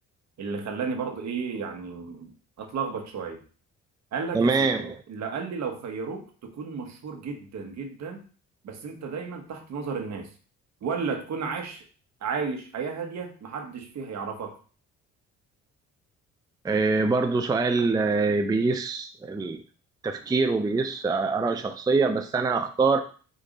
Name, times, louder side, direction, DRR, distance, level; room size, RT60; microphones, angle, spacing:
voice 1, 0.4-2.3 2.6-3.4 4.1-8.3 8.6-10.3 10.8-11.8 12.2-14.6, right 5 dB, 55° right, 4 dB, 1.1 m, -33 dB
voice 2, 4.3-4.9 16.6-19.6 20.0-23.0, right 4 dB, 10° right, 6 dB, 0.4 m, -24 dB
5.1 x 2.5 x 3.9 m, 0.39 s
supercardioid pair, 60°, 33 cm